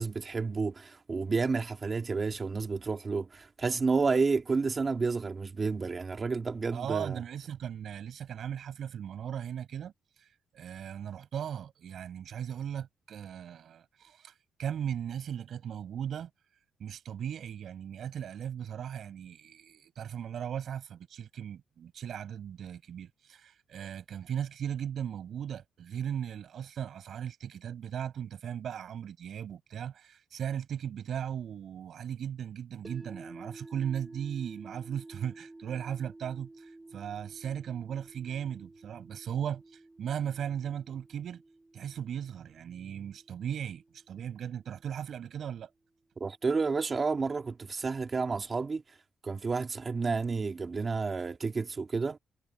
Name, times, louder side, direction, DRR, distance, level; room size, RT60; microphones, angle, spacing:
voice 1, 0.0-7.2 46.2-48.8 49.2-52.2, right 4 dB, 35° right, 1.8 m, -30 dB
voice 2, 6.7-9.9 10.2-10.3 10.5-14.3 14.6-16.3 16.8-41.4 41.7-45.7, right 9 dB, 60° right, 6.1 m, -37 dB
sound 1, 32.8-45.0, right 2 dB, 15° right, 4.3 m, -52 dB
cardioid pair, 90°, 0 cm